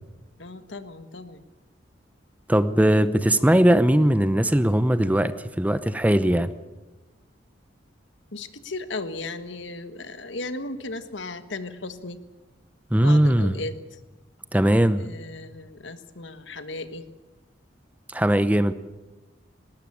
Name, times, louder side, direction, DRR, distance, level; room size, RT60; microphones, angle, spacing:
voice 1, 0.4-1.4 8.3-12.2 12.9-13.8 15.0-17.0, left 2 dB, 80° left, 11 dB, 1.5 m, -36 dB
voice 2, 2.5-6.5 12.9-13.6 14.5-15.0 18.1-18.7, right 1 dB, 10° right, 13 dB, 0.7 m, -19 dB
19.5 x 18.0 x 8.7 m, 1.2 s
head